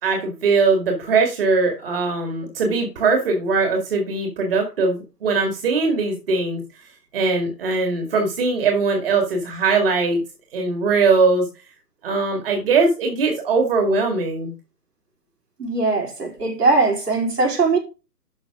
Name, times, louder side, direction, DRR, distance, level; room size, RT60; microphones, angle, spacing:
voice 1, 0.0-6.6 7.1-10.2 10.5-11.5 12.0-14.5, right 4 dB, 35° right, 2.1 m, -20 dB
voice 2, 15.6-17.8, right 3 dB, 65° right, 4.3 m, -20 dB
12.0 x 6.2 x 3.6 m
figure-of-eight pair, 140°, 49 cm